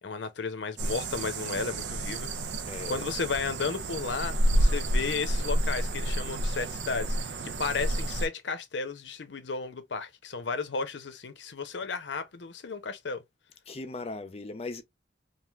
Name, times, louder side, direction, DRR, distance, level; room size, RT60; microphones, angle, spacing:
voice 1, 0.0-2.3 2.9-13.2, left 4 dB, 85° left, 0.6 m, -34 dB
sound 1, 0.8-8.3, right 1 dB, 80° right, 0.5 m, -29 dB
voice 2, 2.7-3.1 13.7-14.8, left 2 dB, 35° left, 0.5 m, -38 dB
3.2 x 2.4 x 2.3 m
head